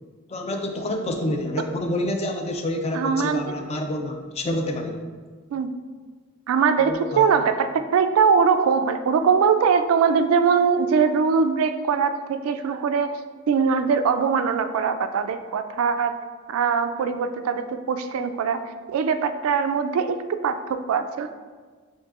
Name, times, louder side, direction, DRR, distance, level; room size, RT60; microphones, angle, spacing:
voice 1, 0.3-5.0 6.9-7.3, left 1 dB, 30° left, 4 dB, 0.3 m, -28 dB
voice 2, 2.9-3.5 5.5-5.7 6.5-13.2 13.5-16.2 16.5-18.6 18.9-21.3, right 6 dB, 80° right, 9 dB, 0.3 m, -22 dB
7.2 x 2.6 x 2.4 m, 1.5 s
head